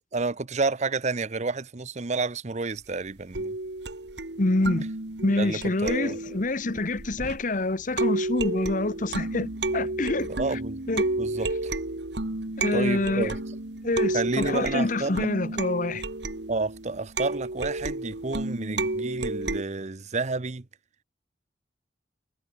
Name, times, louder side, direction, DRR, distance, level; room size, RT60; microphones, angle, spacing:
voice 1, 0.0-3.5 5.4-6.2 10.4-10.8 11.2-11.7 12.7-13.3 14.1-15.3 16.5-20.6, right 3 dB, 40° right, 0.8 m, -30 dB
sound 1, 3.3-7.5 8.0-19.6, right 2 dB, 80° right, 2.0 m, -31 dB
voice 2, 4.4-4.8 5.2-10.6 10.9-11.1 12.6-13.4 13.8-16.0, left 2 dB, 50° left, 1.1 m, -26 dB
head